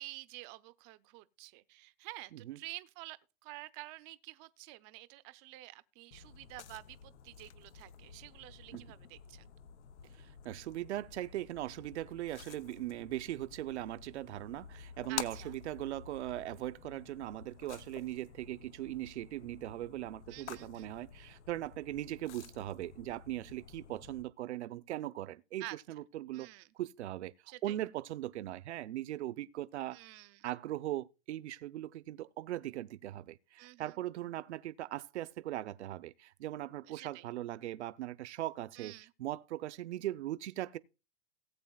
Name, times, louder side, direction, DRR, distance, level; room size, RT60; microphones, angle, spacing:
voice 1, 0.0-9.5 15.1-15.5 20.3-20.9 25.6-25.8 26.3-26.7 27.5-27.8 29.9-30.5 33.6-33.9 36.8-37.3 38.8-39.1, right 20 dB, 25° right, 0.5 m, -49 dB
sound 1, 6.1-24.2, left 8 dB, 80° left, 0.9 m, -50 dB
voice 2, 10.1-27.3 27.6-30.0 30.4-38.9 39.2-40.8, right 14 dB, 75° right, 0.7 m, -40 dB
18.5 x 8.1 x 2.3 m
hypercardioid pair, 150°, 34 cm